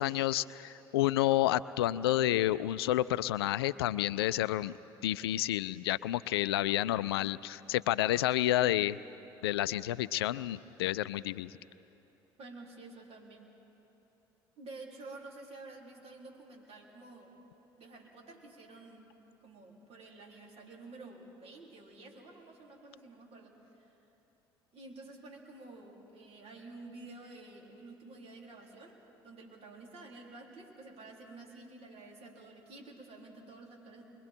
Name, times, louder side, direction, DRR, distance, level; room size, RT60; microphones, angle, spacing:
voice 1, 0.0-4.7 5.0-9.0 9.4-11.5, left 14 dB, 80° left, 17 dB, 0.4 m, -30 dB
voice 2, 12.4-13.5 14.6-17.3 17.8-19.1 19.4-23.9 24.7-34.0, right 2 dB, 50° right, -1 dB, 3.9 m, -50 dB
28.5 x 22.5 x 4.5 m, 3.0 s
hypercardioid pair, 55°, 13 cm